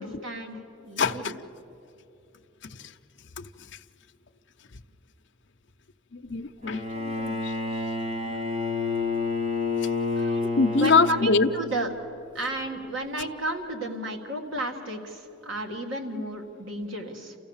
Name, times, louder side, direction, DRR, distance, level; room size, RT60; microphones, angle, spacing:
voice 1, 0.0-1.3 10.1-10.5 10.8-11.9 12.3-17.4, right 1 dB, 70° right, 3 dB, 1.9 m, -33 dB
voice 2, 1.0-1.3 2.7-2.9 3.4-3.5 6.1-7.7 8.2-8.3 10.6-11.5, left 4 dB, 60° left, 6 dB, 0.7 m, -24 dB
Bowed string instrument, 6.6-11.9, left 3 dB, 30° right, 1.3 m, -29 dB
28.5 x 15.0 x 7.2 m, 2.9 s
head